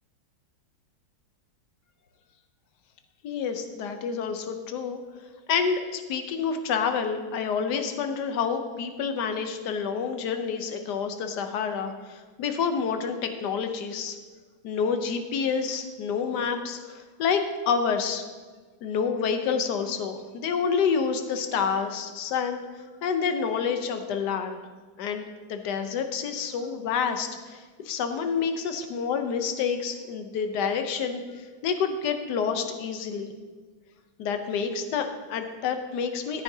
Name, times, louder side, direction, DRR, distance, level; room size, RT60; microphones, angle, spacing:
voice 1, 3.2-5.0 5.5-14.2 14.6-18.2 18.8-22.6 23.0-24.6 25.0-33.3 34.2-36.4, left 6 dB, 65° left, 7 dB, 1.3 m, -28 dB
14.0 x 8.9 x 2.8 m, 1.4 s
omnidirectional pair, 2.2 m